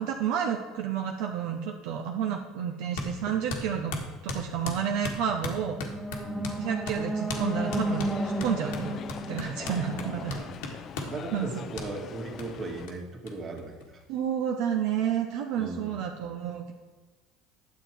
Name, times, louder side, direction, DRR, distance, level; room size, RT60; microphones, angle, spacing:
voice 1, 0.0-4.0 4.2-5.8 6.6-9.0 9.3-10.4 11.3-11.5 14.1-16.7, right 8 dB, 75° right, 2 dB, 0.8 m, -30 dB
sound 1, 3.0-3.1 3.5-6.6 6.9-7.0 7.3-7.5 7.7-11.2 11.8-11.9 12.4-12.5 12.9-13.0 13.3-13.4 13.6-14.3, left 2 dB, 90° left, 1.6 m, -36 dB
sound 2, 5.5-10.6, right 1 dB, ahead, 1.2 m, -33 dB
voice 2, 6.2-6.5 9.6-10.5 11.1-14.0 15.6-16.0, right 2 dB, 40° right, 2 dB, 1.9 m, -38 dB
sound 3, 7.3-12.9, left 9 dB, 45° left, 0.4 m, -43 dB
9.8 x 7.3 x 4.5 m, 1.4 s
supercardioid pair, 110°, 0 cm